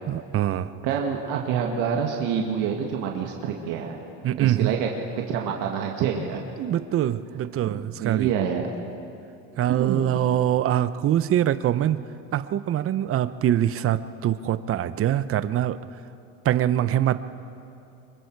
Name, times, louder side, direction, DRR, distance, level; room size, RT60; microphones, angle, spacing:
voice 1, 0.1-0.7 4.2-4.7 6.6-8.3 9.6-12.0 12.3-15.8 16.4-17.3, right 11 dB, 40° right, 13 dB, 0.8 m, -24 dB
voice 2, 0.8-4.0 4.4-4.9 5.3-6.4 7.7-8.7 9.8-10.1, right 7 dB, 70° right, 1 dB, 1.9 m, -27 dB
25.0 x 23.5 x 4.7 m, 2.8 s
supercardioid pair, 105°, 33 cm